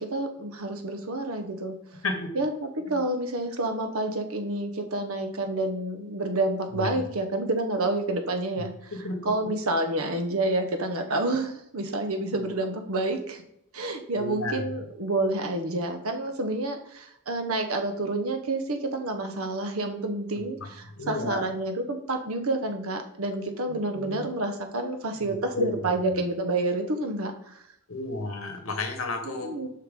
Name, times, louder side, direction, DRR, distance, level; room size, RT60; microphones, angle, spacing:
voice 1, 0.0-1.8 2.3-8.9 9.2-13.4 13.7-27.6 29.2-29.7, right 2 dB, 85° right, 6 dB, 1.0 m, -29 dB
voice 2, 2.0-2.4 2.8-3.0 6.7-7.0 8.5-9.5 14.1-14.7 20.6-21.4 23.7-24.3 25.2-26.2 27.9-29.7, left 2 dB, 70° left, 5 dB, 1.3 m, -33 dB
7.6 x 5.7 x 3.7 m, 0.77 s
head